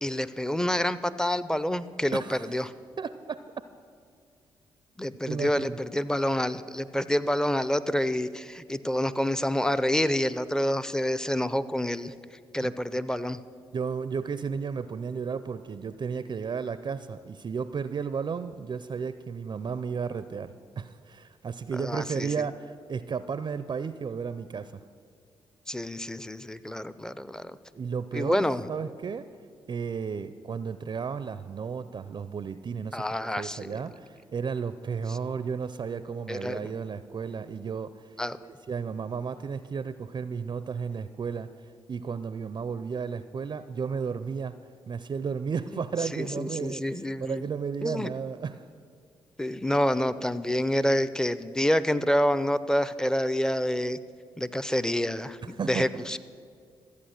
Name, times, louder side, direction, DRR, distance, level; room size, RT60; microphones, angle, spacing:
voice 1, 0.0-2.7 5.0-12.1 12.5-13.4 21.8-22.5 25.7-27.6 28.1-28.7 32.9-33.7 35.1-35.2 36.3-36.7 38.2-38.4 45.7-47.4 47.8-48.1 49.4-54.0 54.4-56.2, left 1 dB, 5° left, 15 dB, 0.6 m, -28 dB
voice 2, 2.1-2.5 3.0-3.4 5.3-5.8 12.6-12.8 13.7-24.8 27.7-28.4 28.7-29.3 29.7-38.2 38.4-44.6 44.9-46.8 47.2-48.7 55.4-56.1, right 6 dB, 40° right, 13 dB, 0.4 m, -33 dB
13.5 x 8.4 x 6.5 m, 2.2 s
supercardioid pair, 50°, 11 cm